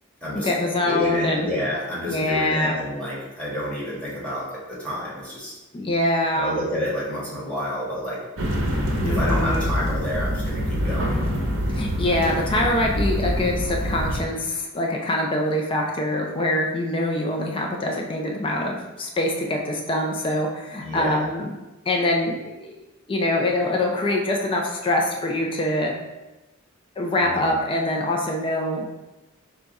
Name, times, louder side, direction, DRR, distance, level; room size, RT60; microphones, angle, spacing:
voice 1, 0.3-1.5 2.1-2.7 5.7-6.6 9.0-9.7 11.7-21.5 21.9-22.8 23.1-25.9 27.0-28.8, left 1 dB, 25° left, 0 dB, 0.5 m, -24 dB
voice 2, 0.8-5.5 6.3-8.2 9.0-11.2 20.8-21.2 27.2-27.5, equal, 5° left, -8 dB, 1.4 m, -29 dB
sound 1, 8.4-14.2, equal, 70° right, 0.7 m, -25 dB
4.9 x 2.3 x 4.0 m, 1.0 s
head